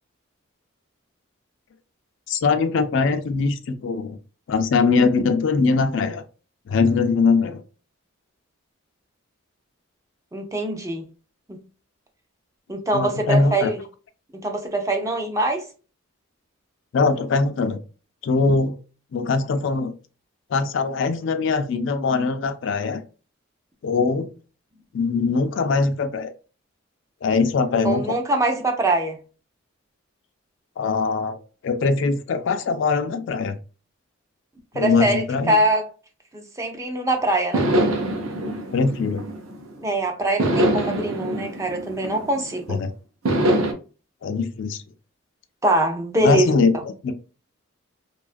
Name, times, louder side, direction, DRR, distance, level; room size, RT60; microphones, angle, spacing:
voice 1, 2.3-4.2 4.5-6.2 6.7-7.6 12.9-13.7 16.9-17.8 18.2-18.7 19.1-19.9 20.5-23.0 23.8-24.3 24.9-26.3 27.2-28.2 30.8-31.4 31.6-33.6 34.7-35.6 38.7-39.2 42.7-42.9 44.2-44.8 46.2-47.1, left 4 dB, 60° left, 0.3 m, -21 dB
voice 2, 10.3-11.0 11.5-11.6 12.7-13.8 14.3-15.7 27.8-29.2 34.7-35.9 36.3-37.7 39.8-42.8 45.6-46.6, right 1 dB, 15° right, 0.4 m, -23 dB
sound 1, 37.5-39.8 40.4-42.6 43.2-43.7, right 1 dB, 80° right, 0.7 m, -23 dB
2.7 x 2.3 x 2.4 m
head